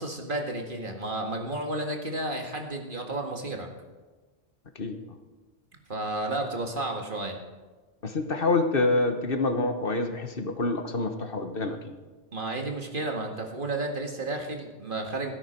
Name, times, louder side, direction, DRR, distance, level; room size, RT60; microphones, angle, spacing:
voice 1, 0.0-3.7 5.9-7.4 12.3-15.3, right 2 dB, 50° right, 2 dB, 2.0 m, -32 dB
voice 2, 8.0-11.9, left 2 dB, 55° left, 6 dB, 1.4 m, -27 dB
15.5 x 13.0 x 4.4 m, 1.3 s
omnidirectional pair, 1.1 m